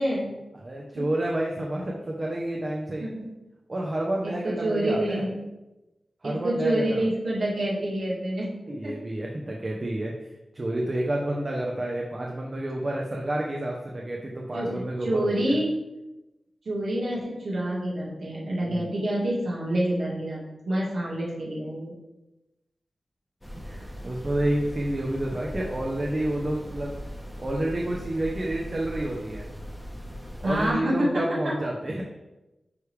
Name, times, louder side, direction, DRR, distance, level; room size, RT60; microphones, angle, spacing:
voice 1, 0.0-0.4 1.0-1.1 3.0-3.3 4.2-5.5 6.2-9.0 14.5-15.7 16.7-21.9 30.4-31.5, right 1 dB, 85° right, -6 dB, 1.9 m, -27 dB
voice 2, 0.5-3.1 3.7-5.2 6.2-7.0 8.7-10.1 10.5-15.6 18.6-18.9 23.6-27.0 27.4-29.5 30.4-32.0, right 1 dB, 35° right, -2 dB, 0.8 m, -29 dB
sound 1, 23.4-30.7, equal, 5° left, 1.1 m, -39 dB
9.5 x 3.4 x 3.3 m, 1.0 s
wide cardioid pair, 100°, 0 cm